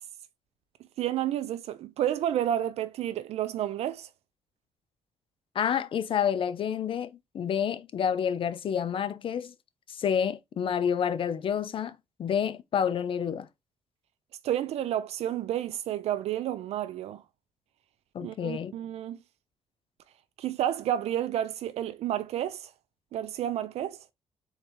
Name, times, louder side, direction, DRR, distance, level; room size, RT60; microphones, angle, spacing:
voice 1, 1.0-4.1 14.4-17.2 18.2-19.2 20.4-22.7 23.1-24.0, right 11 dB, 75° right, 0.4 m, -30 dB
voice 2, 5.5-9.5 9.9-13.5 18.1-18.7, left 8 dB, 55° left, 0.5 m, -29 dB
4.0 x 2.7 x 3.4 m
cardioid pair, 80°, 11 cm